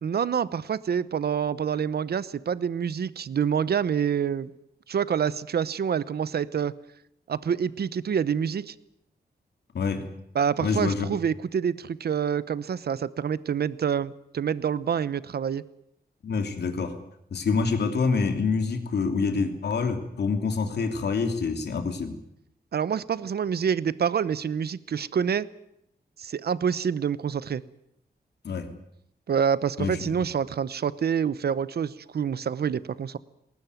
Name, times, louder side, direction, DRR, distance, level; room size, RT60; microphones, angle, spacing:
voice 1, 0.0-4.5 4.9-6.8 7.3-8.7 10.3-15.7 22.7-25.5 26.2-27.6 29.3-33.2, right 7 dB, 70° right, 17 dB, 0.9 m, -27 dB
voice 2, 9.7-10.1 10.6-11.2 16.2-17.0 17.3-22.2 28.4-28.7 29.8-30.2, left 4 dB, 85° left, 6 dB, 2.9 m, -26 dB
20.0 x 19.0 x 9.3 m, 0.75 s
wide cardioid pair, 100°, 17 cm